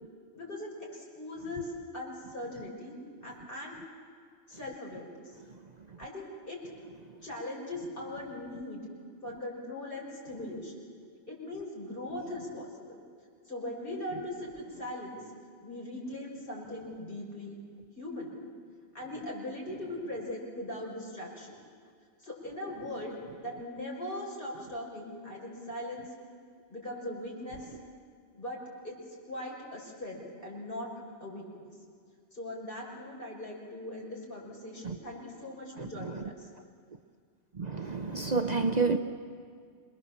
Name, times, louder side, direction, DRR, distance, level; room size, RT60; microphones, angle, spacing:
voice 1, 0.3-3.8 4.5-5.4 6.0-6.6 7.2-8.9 9.2-10.8 11.3-13.0 13.5-15.2 15.6-17.6 18.0-18.3 18.9-21.5 22.2-23.2 23.4-26.1 26.7-27.7 28.3-28.6 28.8-29.0 29.3-30.9 31.2-31.7 32.3-36.5, left 1 dB, 50° left, 6.2 m, -40 dB
voice 2, 37.6-39.0, right 4 dB, 40° right, 0.8 m, -29 dB
27.5 x 21.0 x 7.5 m
omnidirectional pair, 1.2 m